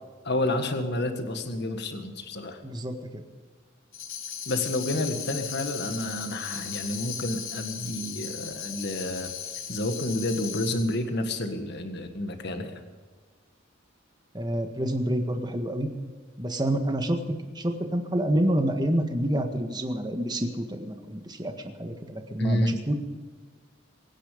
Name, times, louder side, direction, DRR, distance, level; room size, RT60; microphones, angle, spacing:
voice 1, 0.3-2.6 4.5-12.7 22.4-22.7, left 1 dB, 55° left, 6 dB, 1.7 m, -30 dB
voice 2, 2.6-2.9 14.3-15.9 16.4-21.5 21.8-22.9, right 1 dB, 20° right, 5 dB, 1.6 m, -28 dB
Tambourine, 3.9-11.0, left 8 dB, 85° left, 2.2 m, -37 dB
24.0 x 10.0 x 5.2 m, 1.5 s
head